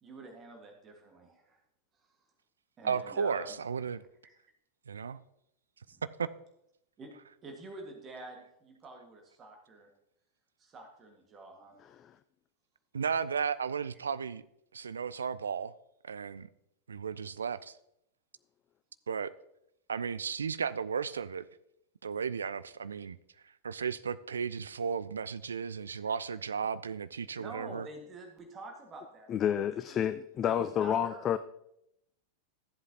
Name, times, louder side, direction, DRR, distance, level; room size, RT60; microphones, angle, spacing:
voice 1, 0.0-1.6 2.0-2.1 2.8-3.6 4.2-4.3 6.0-6.1 7.0-7.1 7.4-9.9 10.6-11.8 27.4-30.1 30.4-31.3, right 2 dB, 25° right, 3 dB, 1.7 m, -47 dB
voice 2, 2.8-4.0 4.9-5.2 6.2-6.3 12.9-14.4 14.7-15.7 16.0-16.5 16.9-17.8 19.1-19.3 19.9-21.5 22.0-23.2 23.6-27.9, right 6 dB, 70° right, 15 dB, 0.3 m, -34 dB
voice 3, 29.3-31.4, left 9 dB, 30° left, 12 dB, 0.3 m, -29 dB
14.0 x 7.9 x 2.9 m, 0.80 s
figure-of-eight pair, 90°, 0 cm